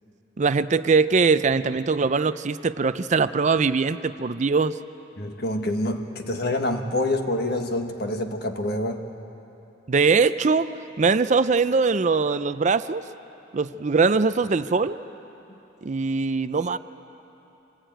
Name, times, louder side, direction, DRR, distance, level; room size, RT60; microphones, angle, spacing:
voice 1, 0.4-4.8 9.9-10.7 11.0-13.0 13.5-15.0 15.8-16.8, right 4 dB, 40° right, 13 dB, 0.5 m, -21 dB
voice 2, 5.2-9.0, left 1 dB, 60° left, 5 dB, 1.6 m, -26 dB
26.5 x 19.5 x 9.1 m, 3.0 s
head